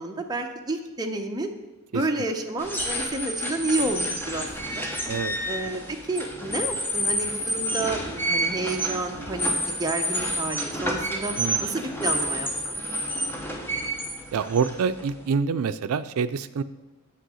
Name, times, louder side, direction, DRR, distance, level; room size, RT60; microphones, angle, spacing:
voice 1, 0.0-1.5 1.9-4.9 5.5-9.5 9.8-11.3 11.6-12.5, right 2 dB, 20° right, 3 dB, 0.7 m, -30 dB
sound 1, 2.6-15.3, equal, 10° left, 1.0 m, -29 dB
voice 2, 11.4-11.7 14.3-16.6, right 5 dB, 80° right, 13 dB, 0.4 m, -26 dB
7.5 x 6.5 x 6.2 m, 1.2 s
head